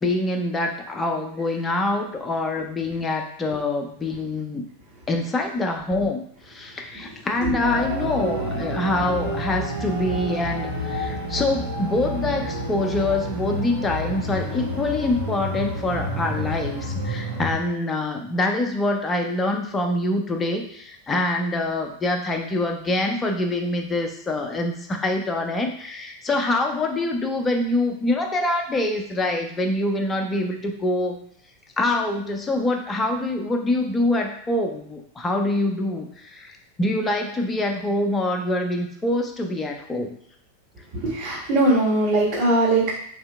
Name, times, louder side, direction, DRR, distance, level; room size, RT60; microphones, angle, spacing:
voice 1, 0.0-4.6 5.1-31.2 31.8-40.1, left 2 dB, 15° left, 4 dB, 0.6 m, -25 dB
sound 1, 7.6-17.6, equal, 65° right, 1.0 m, -29 dB
voice 2, 40.9-42.9, right 2 dB, 35° right, -11 dB, 1.6 m, -20 dB
3.5 x 2.8 x 3.3 m, 0.68 s
figure-of-eight pair, 90°, 0 cm